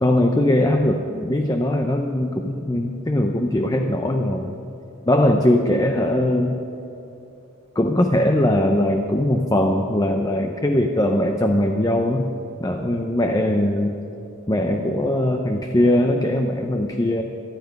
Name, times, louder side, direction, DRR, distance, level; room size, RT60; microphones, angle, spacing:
voice 1, 0.0-4.5 5.1-6.6 7.8-12.3 12.6-13.9 14.5-17.2, left 1 dB, 15° left, 4 dB, 0.7 m, -20 dB
26.0 x 9.6 x 5.3 m, 2.9 s
head